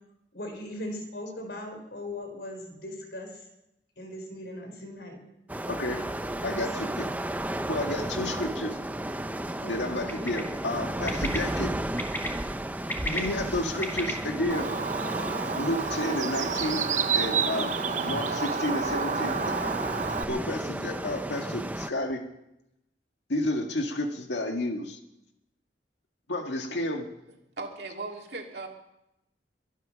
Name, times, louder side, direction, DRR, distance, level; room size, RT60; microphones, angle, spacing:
voice 1, 0.3-3.5 4.0-5.2 6.4-7.0 9.6-10.0, left 1 dB, 70° left, 4 dB, 4.5 m, -39 dB
sound 1, 5.5-21.9, right 1 dB, 10° right, 0.6 m, -34 dB
voice 2, 5.7-6.1 6.4-7.1 7.7-8.8 9.6-11.7 13.0-14.7 15.5-17.8 18.0-19.4 20.3-22.2 23.3-25.0 26.3-27.1, left 1 dB, 85° left, 4 dB, 1.9 m, -31 dB
Bird, 10.1-10.4 11.1-11.4 12.0-12.3 12.7-14.1, equal, 10° left, 1.9 m, -32 dB
Bird 2, 14.5-20.2, right 5 dB, 45° right, 0.7 m, -29 dB
voice 3, 27.6-28.7, right 3 dB, 65° right, 2 dB, 2.6 m, -37 dB
23.0 x 9.2 x 6.4 m, 0.87 s
head